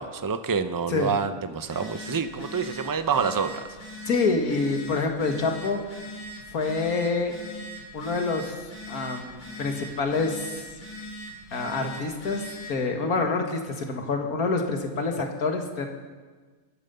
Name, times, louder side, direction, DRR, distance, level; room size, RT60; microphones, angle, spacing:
voice 1, 0.0-3.7, right 5 dB, 30° right, 10 dB, 0.3 m, -27 dB
Telephone, 1.6-12.8, equal, 70° left, 3.6 m, -41 dB
voice 2, 4.0-6.0 6.5-7.4 7.9-10.6 11.5-15.9, left 3 dB, 85° left, 3 dB, 2.1 m, -27 dB
23.0 x 9.2 x 6.8 m, 1.4 s
omnidirectional pair, 1.5 m